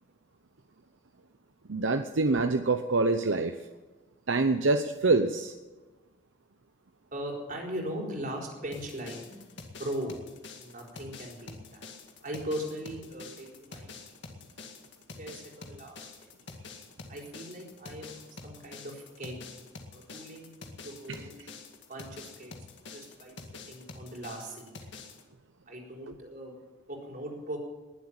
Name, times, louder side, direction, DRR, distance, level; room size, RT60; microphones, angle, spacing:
voice 1, 1.7-3.5 4.3-5.5 21.1-21.2, right 3 dB, 75° right, 7 dB, 0.8 m, -25 dB
voice 2, 7.1-9.4 9.7-10.2 10.6-11.8 12.2-14.2 15.1-16.0 17.1-19.4 19.9-20.5 20.8-21.5 21.9-22.5 22.9-23.4 23.7-24.7 25.7-26.6 26.9-27.6, right 1 dB, 45° right, 0 dB, 4.4 m, -39 dB
sound 1, 8.7-25.2, left 4 dB, 65° left, 2.2 m, -47 dB
20.5 x 8.0 x 8.9 m, 1.2 s
head